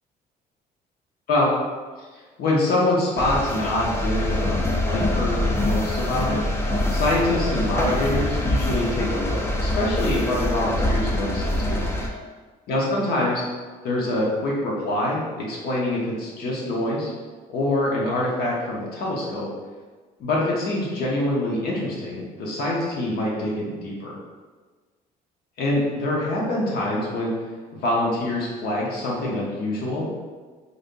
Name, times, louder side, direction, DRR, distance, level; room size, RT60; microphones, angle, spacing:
voice 1, 2.4-6.4 6.9-11.9 12.7-13.4 13.8-17.1 17.5-19.5 20.2-24.1 25.6-27.3 27.7-30.1, left 1 dB, 65° left, -4 dB, 0.8 m, -25 dB
sound 1, 3.2-12.1, left 1 dB, 15° left, 0.4 m, -24 dB
3.3 x 2.6 x 2.6 m, 1.4 s
cardioid pair, 110°, 17 cm